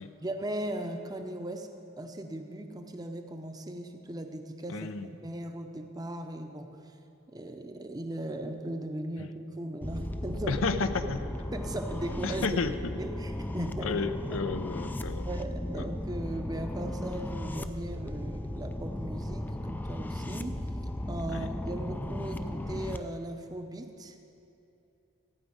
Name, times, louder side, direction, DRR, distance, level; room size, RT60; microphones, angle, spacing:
voice 1, 0.0-1.7 2.0-4.9 5.2-6.8 7.3-10.6 11.5-12.6 13.0-14.4 15.2-20.6 21.1-24.2, right 1 dB, 20° right, 6 dB, 0.7 m, -38 dB
voice 2, 4.7-5.1 10.5-11.2 12.2-12.9 13.8-15.3 15.7-15.8 21.3-21.5, left 4 dB, 80° left, 10 dB, 0.6 m, -32 dB
sound 1, 9.8-23.0, left 1 dB, 10° left, 0.3 m, -36 dB
15.0 x 5.0 x 8.7 m, 2.8 s
head